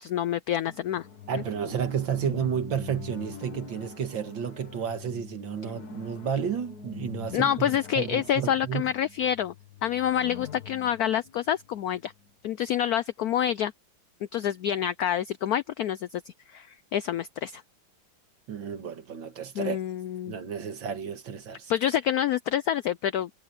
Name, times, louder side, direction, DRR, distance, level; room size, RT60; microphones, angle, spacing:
voice 1, 0.0-1.1 7.3-9.5 9.8-12.1 12.4-13.7 14.3-17.6 19.6-20.3 21.7-23.3, left 10 dB, 85° left, 0.8 m, -27 dB
sound 1, 0.7-12.3, left 6 dB, 50° left, 2.1 m, -44 dB
voice 2, 1.3-7.5 8.0-8.9 18.5-19.8 20.3-21.7, right 8 dB, 70° right, 2.4 m, -31 dB
omnidirectional pair, 2.2 m